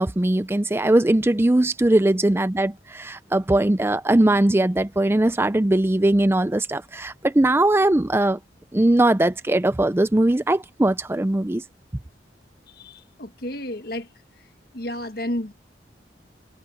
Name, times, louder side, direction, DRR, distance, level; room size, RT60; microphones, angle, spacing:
voice 1, 0.0-8.4 8.7-11.6, right 1 dB, 15° right, 0.4 m, -20 dB
voice 2, 12.8-14.1 14.7-15.5, left 1 dB, 55° left, 1.6 m, -31 dB
head